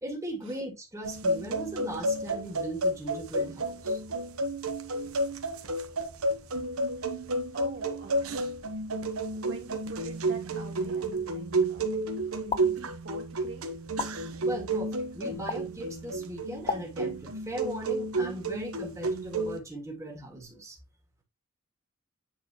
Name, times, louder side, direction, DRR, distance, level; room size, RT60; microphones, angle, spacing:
voice 1, 0.0-4.0 14.4-20.8, right 1 dB, 15° right, 2.0 m, -38 dB
sound 1, 1.0-19.6, right 2 dB, 80° right, 1.1 m, -31 dB
voice 2, 7.0-8.4 8.7-8.8 9.3-11.9 12.4-13.8, right 2 dB, 60° right, 2.3 m, -45 dB
sound 2, 12.5-12.6 14.0-14.1 15.5-15.6 16.7-16.8, left 5 dB, 25° left, 0.5 m, -30 dB
8.9 x 4.5 x 3.0 m
head